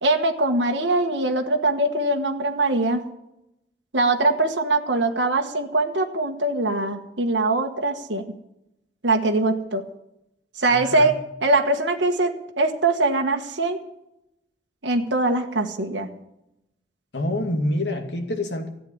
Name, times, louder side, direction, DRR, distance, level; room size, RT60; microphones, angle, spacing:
voice 1, 0.0-3.0 3.9-8.2 9.0-9.8 10.6-13.8 14.8-16.1, right 2 dB, 85° right, 3 dB, 1.5 m, -22 dB
voice 2, 10.7-11.1 17.1-18.7, left 1 dB, 75° left, 4 dB, 2.3 m, -26 dB
14.0 x 8.6 x 9.7 m, 0.84 s
head